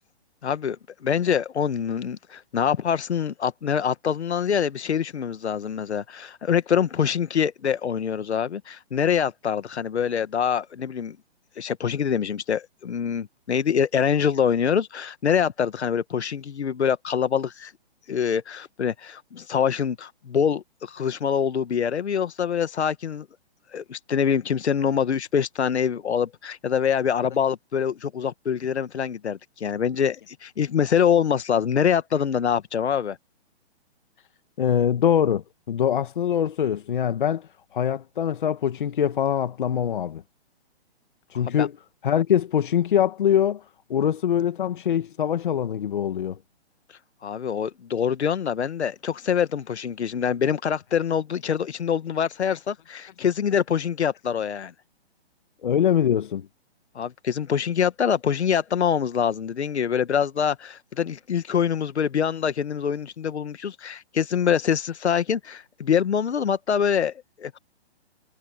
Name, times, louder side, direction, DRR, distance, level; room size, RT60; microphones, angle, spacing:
voice 1, 0.4-11.2 11.6-17.7 18.1-23.3 23.7-33.2 41.5-41.7 47.2-54.7 56.9-67.6, left 7 dB, 75° left, 1.6 m, -25 dB
voice 2, 34.6-37.5 37.7-40.2 41.3-41.7 42.0-43.6 43.9-46.4 55.6-56.5, left 9 dB, 50° left, 1.3 m, -23 dB
hypercardioid pair, 170°, 33 cm